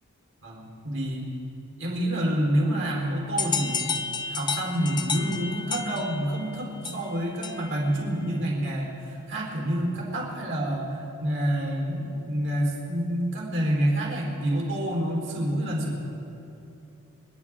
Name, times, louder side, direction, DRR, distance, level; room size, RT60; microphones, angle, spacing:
voice 1, 0.4-1.3 1.8-16.0, right 1 dB, 55° right, -3 dB, 3.9 m, -28 dB
sound 1, 3.4-7.9, left 5 dB, 20° left, 0.6 m, -32 dB
29.0 x 11.0 x 3.7 m, 2.8 s
head